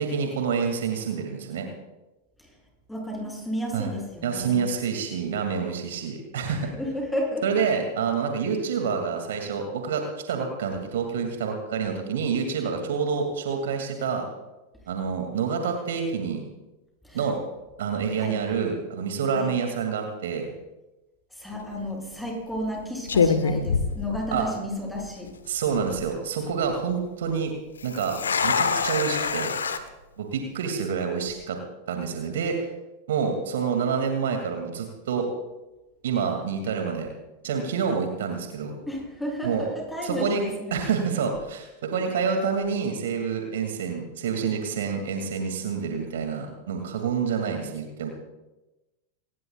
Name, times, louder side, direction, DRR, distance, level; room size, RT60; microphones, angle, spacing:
voice 1, 0.0-1.7 3.7-3.9 4.2-6.7 7.4-14.2 14.9-16.4 17.1-17.4 17.8-20.5 24.3-24.5 25.5-27.5 27.8-28.2 28.4-29.5 30.2-31.6 31.9-32.6 33.1-35.3 36.0-37.1 37.4-38.8 39.4-39.7 40.0-40.5 40.7-48.1, right 6 dB, 60° right, 4 dB, 2.3 m, -27 dB
voice 2, 2.9-4.6 6.8-7.6 17.0-17.2 18.2-18.4 19.3-19.5 21.3-25.3 38.9-40.8, equal, 5° left, -2 dB, 7.4 m, -32 dB
sound 1, 21.5-21.8 22.6-22.7 23.1-24.7 24.9-25.0 25.7-26.0 27.8-29.8, left 5 dB, 70° left, 1.2 m, -25 dB
24.5 x 20.0 x 2.4 m, 1.0 s
figure-of-eight pair, 90°, 0 cm